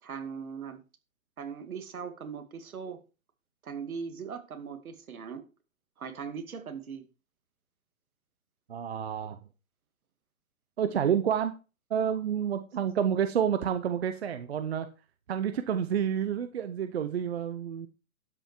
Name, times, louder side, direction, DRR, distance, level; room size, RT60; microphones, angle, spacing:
voice 1, 0.0-0.8 1.4-3.0 3.6-5.4 6.0-7.0, right 6 dB, 90° right, 2.4 m, -39 dB
voice 2, 8.7-9.4 10.8-11.5 11.9-14.9 15.3-17.9, right 8 dB, 50° right, 0.9 m, -29 dB
12.0 x 5.8 x 4.6 m
hypercardioid pair, 175°, 41 cm